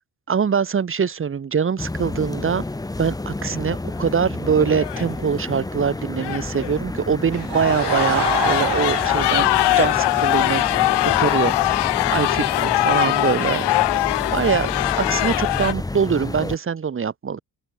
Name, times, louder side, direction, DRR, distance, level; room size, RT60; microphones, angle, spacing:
voice 1, 0.3-2.6 3.0-9.5 9.7-10.6 11.0-13.8 14.3-14.7 15.0-17.4, right 6 dB, 30° right, 1.5 m, -23 dB
sound 1, 1.8-16.6, left 2 dB, 10° left, 1.0 m, -30 dB
sound 2, 3.5-3.7 4.0-4.1 4.7-5.1 6.2-6.8 7.3-15.7, left 17 dB, 85° left, 0.7 m, -21 dB
Laughter / Crowd, 7.3-10.8, right 15 dB, 75° right, 0.9 m, -29 dB
open air
cardioid pair, 155°, 40 cm